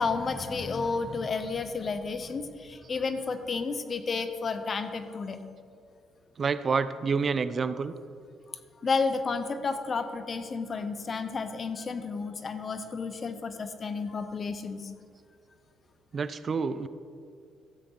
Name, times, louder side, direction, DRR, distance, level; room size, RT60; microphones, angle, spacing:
voice 1, 0.0-5.4 8.5-14.9, left 4 dB, 40° left, 10 dB, 0.8 m, -31 dB
voice 2, 6.4-7.9 16.1-16.9, right 5 dB, 45° right, 14 dB, 0.4 m, -28 dB
13.5 x 8.0 x 4.0 m, 2.3 s
cardioid pair, 80°, 0 cm